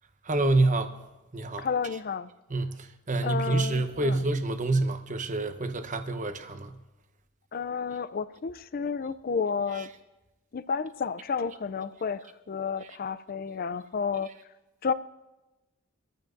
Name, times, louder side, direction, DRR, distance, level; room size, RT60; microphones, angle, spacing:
voice 1, 0.3-0.9 1.3-1.7 2.5-2.7 3.1-6.7, right 2 dB, 35° right, 8 dB, 0.9 m, -27 dB
voice 2, 1.6-2.3 3.2-4.2 7.5-9.9 10.5-14.3 14.8-14.9, left 5 dB, 40° left, 14 dB, 0.4 m, -31 dB
24.0 x 14.5 x 2.6 m, 1.0 s
head